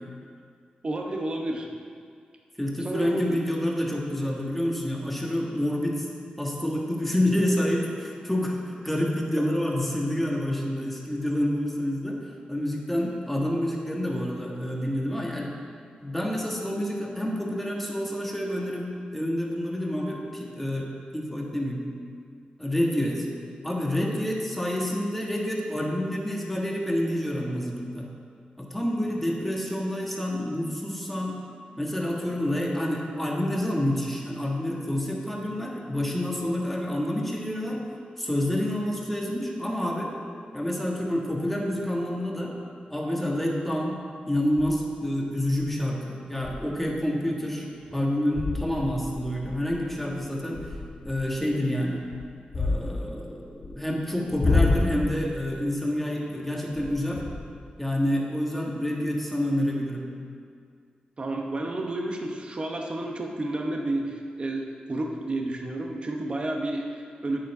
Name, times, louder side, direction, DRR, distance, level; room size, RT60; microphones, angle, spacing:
voice 1, 0.8-1.7 2.8-3.4 9.4-9.5 61.2-67.4, right 2 dB, 35° right, 1 dB, 0.9 m, -31 dB
voice 2, 2.6-6.1 6.4-15.5 16.0-21.8 22.6-23.3 23.6-28.1 28.6-31.4 31.8-37.8 38.2-40.1 40.5-42.5 42.9-44.0 44.3-50.7 51.0-52.0 52.5-57.2 57.8-60.0, left 1 dB, 5° left, -1 dB, 1.5 m, -28 dB
sound 1, 40.8-40.9 44.5-44.8 45.3-45.6 45.9-46.0 46.4-46.7 47.2-47.3 47.8-48.0 48.3-51.2 52.0-53.7 54.2-55.3 56.7-57.7, left 3 dB, 75° left, 2.2 m, -29 dB
9.2 x 6.7 x 4.8 m, 2.1 s
wide cardioid pair, 95°, 3 cm